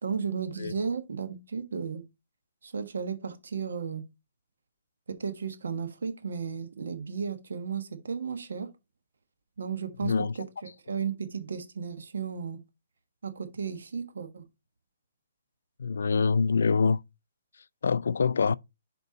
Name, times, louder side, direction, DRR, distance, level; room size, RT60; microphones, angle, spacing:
voice 1, 0.0-2.0 2.6-4.1 5.1-8.7 9.6-12.6 13.2-14.5, right 6 dB, 85° right, 1.2 m, -34 dB
voice 2, 10.0-10.4 15.8-17.0 17.8-18.6, left 5 dB, 80° left, 0.3 m, -25 dB
6.7 x 4.5 x 3.9 m
hypercardioid pair, 165°, 0 cm